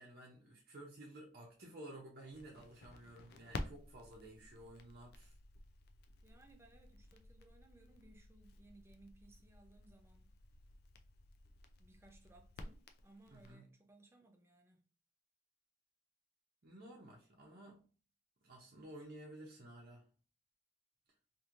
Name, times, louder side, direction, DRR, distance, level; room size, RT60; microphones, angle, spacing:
voice 1, 0.0-5.3 13.3-13.8 16.6-17.9 18.4-20.1, right 1 dB, 55° right, 0.6 m, -54 dB
Crackle, 2.3-13.5, left 2 dB, 55° left, 0.4 m, -53 dB
voice 2, 6.2-10.3 11.8-14.9, right 2 dB, 15° right, 0.4 m, -64 dB
3.0 x 2.6 x 2.5 m
head